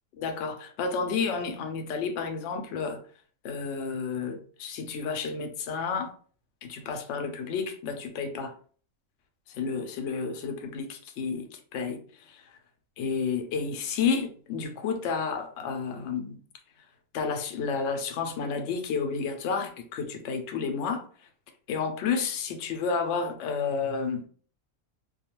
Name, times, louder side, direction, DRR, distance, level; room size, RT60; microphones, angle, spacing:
voice 1, 0.2-3.0 3.4-6.1 6.6-8.5 9.5-12.4 13.0-16.4 17.1-21.0 21.7-24.2, left 5 dB, 65° left, 0.8 m, -31 dB
2.4 x 2.2 x 2.9 m
omnidirectional pair, 1.4 m